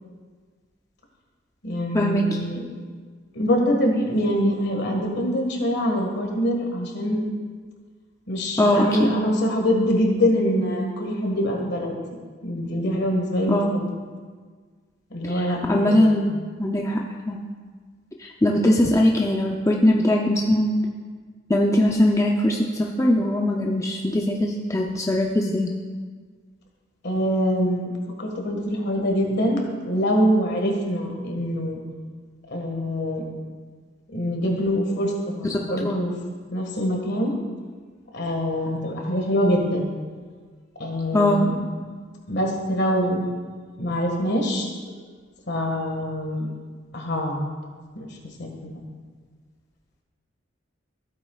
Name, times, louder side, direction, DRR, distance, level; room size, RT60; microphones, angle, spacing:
voice 1, 1.6-2.6 3.3-7.2 8.3-11.9 12.4-13.9 15.1-16.2 27.0-27.9 28.2-31.8 32.5-33.2 34.1-36.1 36.5-37.4 38.1-39.9 40.8-41.6 42.3-43.3 43.8-44.7 45.5-46.5 46.9-47.4 47.9-48.1 48.4-48.8, equal, 60° left, 1 dB, 1.7 m, -24 dB
voice 2, 8.6-9.1 13.5-13.7 15.7-16.3 16.6-17.0 17.3-17.4 18.2-20.7 21.5-25.7 35.8-36.0 41.1-41.5, left 1 dB, 15° left, 0 dB, 0.5 m, -20 dB
15.0 x 8.5 x 2.4 m, 1.5 s
head